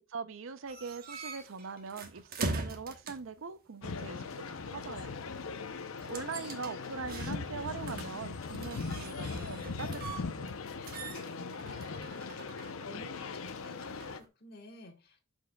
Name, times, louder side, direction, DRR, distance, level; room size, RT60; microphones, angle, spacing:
voice 1, 0.1-5.1 6.1-10.6, right 5 dB, 65° right, 0.6 m, -42 dB
sound 1, 0.7-3.4 6.0-7.6 7.9-10.6 10.9-14.2, right 3 dB, 45° right, 1.1 m, -42 dB
sound 2, 3.8-14.2, left 4 dB, 75° left, 0.7 m, -40 dB
voice 2, 11.2-15.2, left 1 dB, 50° left, 1.3 m, -52 dB
12.5 x 4.5 x 2.3 m
head